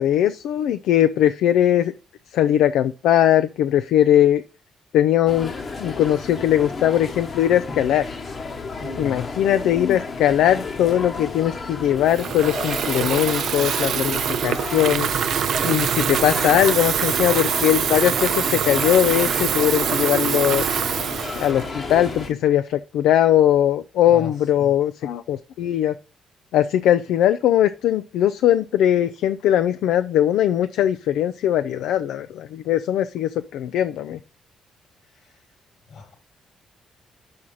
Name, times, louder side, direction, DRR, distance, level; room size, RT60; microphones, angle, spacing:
voice 1, 0.0-1.9 2.3-4.4 4.9-5.5 5.8-8.2 9.0-15.1 15.6-20.7 21.4-25.9 26.5-34.2, left 11 dB, 85° left, 0.4 m, -20 dB
sound 1, 5.3-22.3, left 4 dB, 40° left, 1.0 m, -32 dB
voice 2, 8.8-9.4 24.0-24.7 35.2-35.4 35.9-36.2, left 5 dB, 65° left, 2.0 m, -37 dB
Water tap faucet / Fill (with liquid), 12.1-22.3, right 9 dB, 70° right, 0.5 m, -24 dB
6.1 x 4.9 x 5.5 m
cardioid pair, 90°, 0 cm